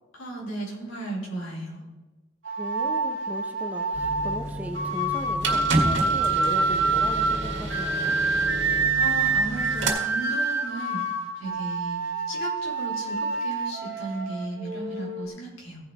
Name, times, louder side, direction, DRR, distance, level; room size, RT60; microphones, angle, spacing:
voice 1, 0.2-1.8 8.9-11.0 11.4-12.0 12.3-15.8, right 1 dB, 85° left, -3 dB, 4.4 m, -35 dB
sound 1, 2.5-15.3, right 3 dB, 75° right, 1.8 m, -27 dB
voice 2, 2.6-8.2, equal, 10° right, 4 dB, 0.8 m, -38 dB
sound 2, 3.9-9.9, right 1 dB, 60° right, 2.0 m, -31 dB
16.5 x 5.6 x 4.9 m, 1.1 s
head